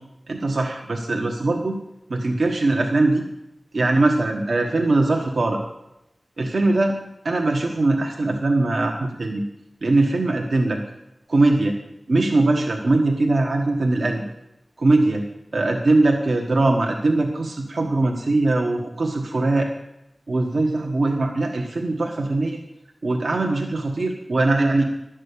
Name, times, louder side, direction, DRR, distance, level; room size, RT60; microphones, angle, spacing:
voice 1, 0.3-1.8 2.1-3.2 3.7-5.6 6.4-7.0 7.2-9.4 9.8-10.8 11.3-11.8 12.1-14.2 14.8-15.3 15.5-19.7 20.3-22.6 23.0-24.8, right 2 dB, 85° right, 1 dB, 1.3 m, -21 dB
11.5 x 6.3 x 8.4 m, 0.86 s
wide cardioid pair, 60°, 0 cm